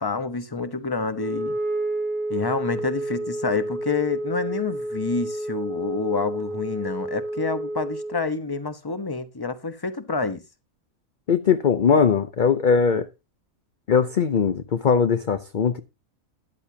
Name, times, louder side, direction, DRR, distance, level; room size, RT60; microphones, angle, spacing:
voice 1, 0.0-1.6 2.3-10.4, left 4 dB, 20° left, 1.0 m, -28 dB
Wind instrument woodwind instrument, 1.1-8.2, right 1 dB, 35° right, 1.8 m, -30 dB
voice 2, 11.3-13.1 13.9-15.8, left 6 dB, 45° left, 0.7 m, -20 dB
13.0 x 11.0 x 2.8 m
omnidirectional pair, 1.5 m